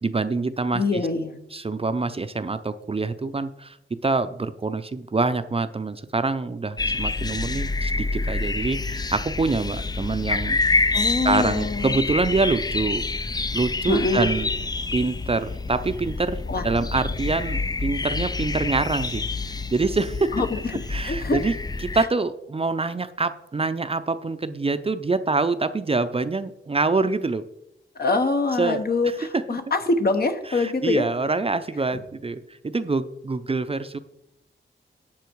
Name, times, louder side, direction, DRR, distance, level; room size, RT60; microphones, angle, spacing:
voice 1, 0.0-1.0 1.5-3.8 4.0-10.6 11.2-13.0 13.5-14.5 14.9-20.3 20.9-21.6 21.9-27.4 28.6-28.8 29.3-29.4 30.5-34.0, right 3 dB, 30° right, 10 dB, 0.6 m, -25 dB
voice 2, 0.7-1.4 10.9-12.0 13.9-14.3 16.5-16.7 20.3-21.4 21.9-22.0 27.9-31.1, left 3 dB, 50° left, 7 dB, 1.1 m, -24 dB
sound 1, 6.8-22.1, left 3 dB, 20° left, 0.4 m, -27 dB
12.0 x 7.5 x 4.6 m, 0.81 s
wide cardioid pair, 110°, 20 cm